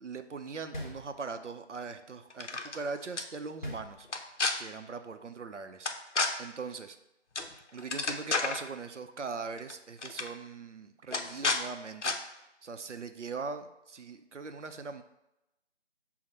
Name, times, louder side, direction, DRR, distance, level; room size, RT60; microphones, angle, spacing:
voice 1, 0.0-4.1 4.6-7.0 7.7-15.0, right 4 dB, 85° right, 8 dB, 0.5 m, -41 dB
sound 1, 0.7-1.6 3.6-4.5, equal, 40° left, 0.8 m, -42 dB
sound 2, 2.3-2.8 3.2-3.3 4.1-4.5 5.9-6.3 7.4-7.5 7.8-8.6 9.6-9.7 10.0-10.3 11.1-11.6 12.0-12.2, left 3 dB, 75° left, 0.6 m, -30 dB
5.8 x 2.1 x 4.1 m, 0.91 s
figure-of-eight pair, 170°, 36 cm